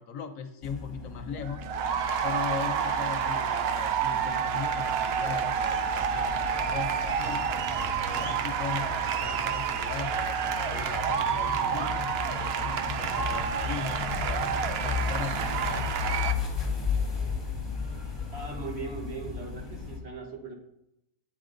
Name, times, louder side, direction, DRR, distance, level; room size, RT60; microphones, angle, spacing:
voice 1, 0.0-1.6 2.2-7.4 8.0-8.9 9.2-14.5 14.8-16.2, left 6 dB, 65° left, 7 dB, 1.0 m, -39 dB
sound 1, 0.6-20.0, left 5 dB, 20° left, 1.1 m, -35 dB
sound 2, 1.3-16.3, right 7 dB, 80° right, 0.5 m, -29 dB
voice 2, 18.3-20.5, right 3 dB, 45° right, 2 dB, 1.2 m, -39 dB
8.4 x 4.3 x 3.8 m, 0.80 s
omnidirectional pair, 1.6 m